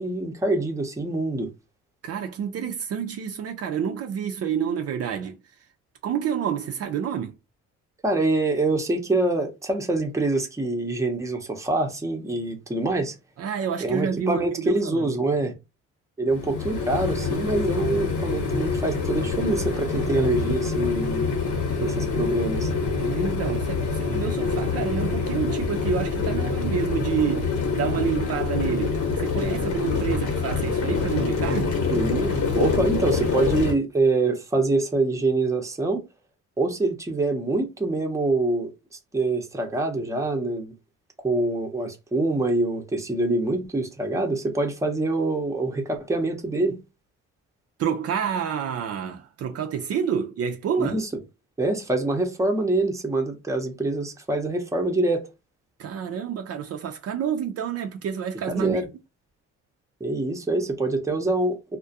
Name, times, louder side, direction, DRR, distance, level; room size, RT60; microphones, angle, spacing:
voice 1, 0.0-1.5 8.0-13.1 13.8-15.5 16.2-21.3 21.8-22.7 31.9-36.0 36.6-38.7 39.1-40.7 41.2-46.8 50.8-51.1 51.6-55.3 58.5-58.9 60.0-61.8, right 2 dB, 10° right, 0.6 m, -25 dB
voice 2, 2.0-5.4 6.0-7.4 13.4-15.1 23.0-31.8 47.8-51.0 55.8-58.8, right 8 dB, 55° right, 0.4 m, -28 dB
sound 1, 16.3-33.7, left 4 dB, 80° left, 0.9 m, -26 dB
2.3 x 2.1 x 2.6 m
cardioid pair, 90°, 30 cm